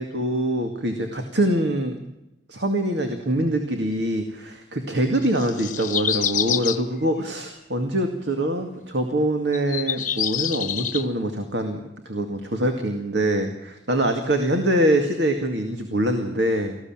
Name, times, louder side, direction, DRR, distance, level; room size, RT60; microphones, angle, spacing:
voice 1, 0.0-2.0 2.5-11.8 12.1-16.8, right 1 dB, 70° right, 5 dB, 2.2 m, -24 dB
sound 1, 5.2-6.8 7.6-7.7 9.5-11.0, left 9 dB, 45° left, 1.0 m, -26 dB
19.5 x 15.0 x 9.0 m, 0.90 s
head